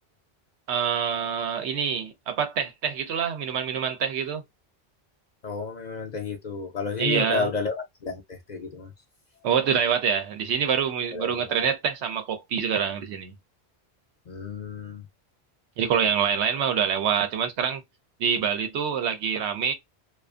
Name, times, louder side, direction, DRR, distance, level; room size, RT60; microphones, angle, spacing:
voice 1, 0.7-4.4 7.0-7.5 9.4-13.3 15.8-17.8 18.2-19.7, right 7 dB, 90° right, 0.9 m, -26 dB
voice 2, 5.4-7.7 8.0-8.9 11.1-11.7 14.3-15.1, left 4 dB, 55° left, 0.5 m, -31 dB
2.4 x 2.3 x 2.4 m
omnidirectional pair, 1.1 m